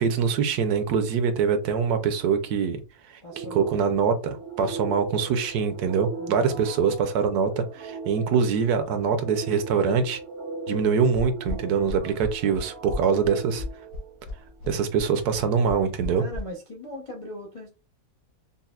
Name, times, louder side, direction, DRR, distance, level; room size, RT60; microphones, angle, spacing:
voice 1, 0.0-2.8 3.4-10.2 10.7-13.6 14.7-16.2, right 6 dB, 75° right, 1.1 m, -24 dB
voice 2, 3.2-3.8 6.2-6.7 16.2-17.7, left 1 dB, 60° left, 0.3 m, -40 dB
sound 1, 3.3-14.6, right 3 dB, 55° right, 0.7 m, -39 dB
sound 2, 11.1-16.4, left 3 dB, 80° left, 1.3 m, -34 dB
5.4 x 2.1 x 2.3 m
omnidirectional pair, 1.7 m